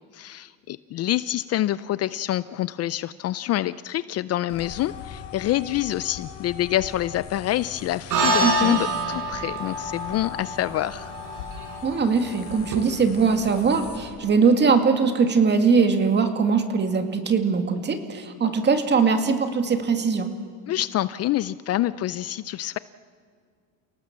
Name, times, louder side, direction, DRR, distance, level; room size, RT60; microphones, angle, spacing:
voice 1, 0.1-11.1 20.7-22.8, left 14 dB, 45° left, 16 dB, 0.5 m, -27 dB
sound 1, 4.5-14.1, left 7 dB, 85° left, 4.1 m, -41 dB
sound 2, 8.1-12.8, right 2 dB, 60° right, 5.1 m, -27 dB
voice 2, 8.4-8.8 11.8-20.3, right 5 dB, 30° right, 7 dB, 2.3 m, -21 dB
29.5 x 18.0 x 7.4 m, 2.1 s
cardioid pair, 125°, 36 cm